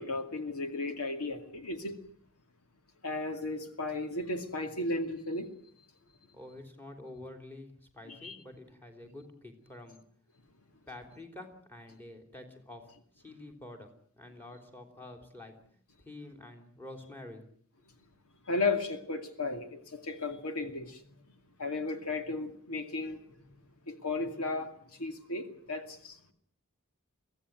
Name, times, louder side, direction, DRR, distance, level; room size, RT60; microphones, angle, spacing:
voice 1, 0.0-2.0 3.0-5.5 8.1-8.4 18.5-21.0 21.6-23.2 23.9-26.3, left 3 dB, 75° left, 2.5 m, -34 dB
voice 2, 6.3-10.0 10.9-15.5 16.0-17.5, left 2 dB, 10° left, 3.4 m, -48 dB
23.5 x 16.0 x 9.4 m
head